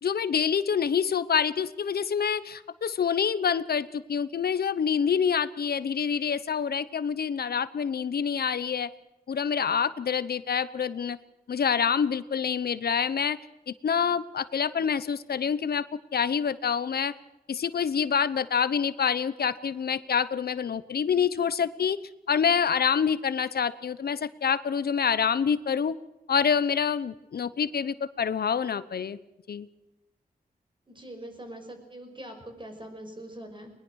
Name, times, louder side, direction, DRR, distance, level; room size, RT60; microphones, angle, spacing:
voice 1, 0.0-8.9 9.3-11.2 11.5-13.4 13.7-15.8 16.1-17.1 17.5-22.0 22.3-25.9 26.3-29.2 29.5-29.7, left 7 dB, 85° left, 15 dB, 0.9 m, -26 dB
voice 2, 30.9-33.7, right 1 dB, 30° right, 5 dB, 5.9 m, -43 dB
21.0 x 21.0 x 6.4 m, 0.96 s
wide cardioid pair, 85°, 16 cm